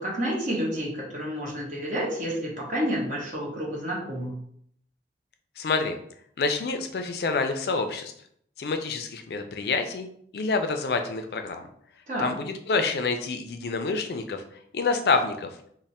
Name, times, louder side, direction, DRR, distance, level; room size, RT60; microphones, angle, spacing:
voice 1, 0.0-4.3 12.1-12.4, equal, 45° right, -3 dB, 1.1 m, -30 dB
voice 2, 5.6-6.0 6.4-8.1 8.6-10.1 10.3-11.7 12.2-14.4 14.7-15.5, left 4 dB, 60° left, 6 dB, 0.4 m, -27 dB
3.2 x 2.1 x 4.1 m, 0.67 s
head